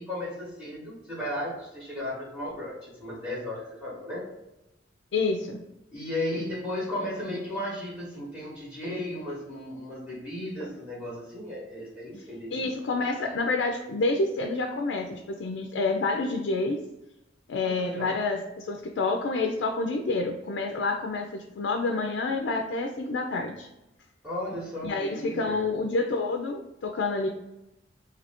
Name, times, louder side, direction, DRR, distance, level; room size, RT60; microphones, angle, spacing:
voice 1, 0.0-4.3 5.9-12.6 17.6-18.1 24.2-25.6, left 1 dB, 10° right, -7 dB, 0.9 m, -35 dB
voice 2, 5.1-5.6 12.5-16.8 17.5-23.7 24.8-27.3, left 3 dB, 80° left, 3 dB, 0.4 m, -28 dB
2.8 x 2.5 x 3.4 m, 0.93 s
head